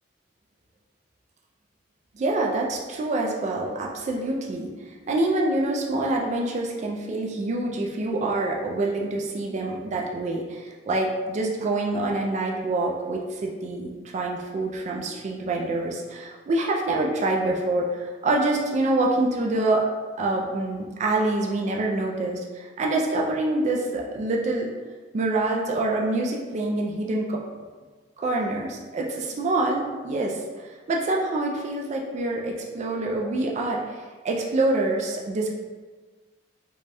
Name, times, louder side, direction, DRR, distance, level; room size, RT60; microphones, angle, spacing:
voice 1, 2.1-19.9 20.2-24.7 25.1-27.4 28.2-35.5, right 2 dB, 40° right, -1 dB, 0.3 m, -26 dB
3.2 x 2.2 x 2.6 m, 1.4 s
head